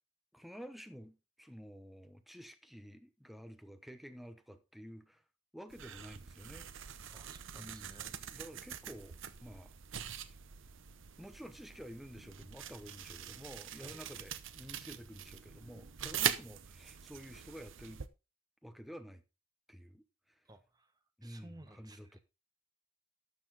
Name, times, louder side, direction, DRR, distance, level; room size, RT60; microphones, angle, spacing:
voice 1, 0.3-5.2 5.5-6.7 7.6-10.3 11.2-18.0 18.6-19.2 19.7-20.0 21.2-22.2, equal, ahead, 0.9 m, -51 dB
sound 1, 5.7-18.1, right 9 dB, 65° right, 0.8 m, -43 dB
voice 2, 7.1-8.1 13.8-14.0 20.4-20.9 21.2-22.2, right 1 dB, 20° right, 1.2 m, -56 dB
12.5 x 7.1 x 3.9 m
head